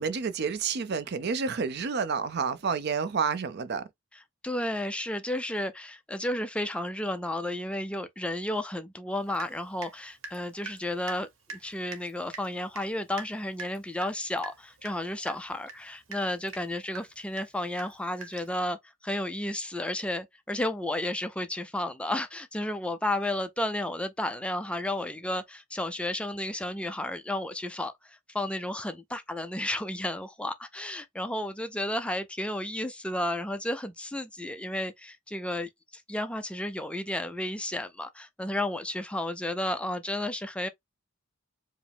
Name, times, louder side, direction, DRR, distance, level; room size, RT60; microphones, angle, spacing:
voice 1, 0.0-3.9, right 5 dB, 55° right, 0.5 m, -29 dB
voice 2, 4.4-18.8 19.0-40.7, left 1 dB, 5° left, 0.4 m, -32 dB
Water tap faucet / Drip, 9.3-10.0 10.2-18.6, right 4 dB, 85° right, 1.1 m, -44 dB
4.8 x 2.0 x 3.4 m
head